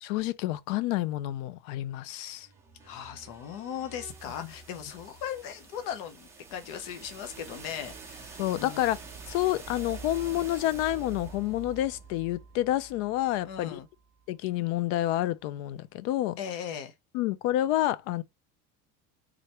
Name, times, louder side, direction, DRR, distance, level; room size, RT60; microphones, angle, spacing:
voice 1, 0.0-2.5 8.4-9.0 9.3-13.8 14.3-16.4 17.1-18.2, left 14 dB, 80° left, 0.5 m, -29 dB
sound 1, 2.3-14.2, right 4 dB, 5° right, 0.7 m, -47 dB
voice 2, 2.8-8.9 13.4-13.9 16.4-16.9, left 9 dB, 55° left, 0.8 m, -38 dB
3.7 x 3.3 x 2.9 m
cardioid pair, 180°, 37 cm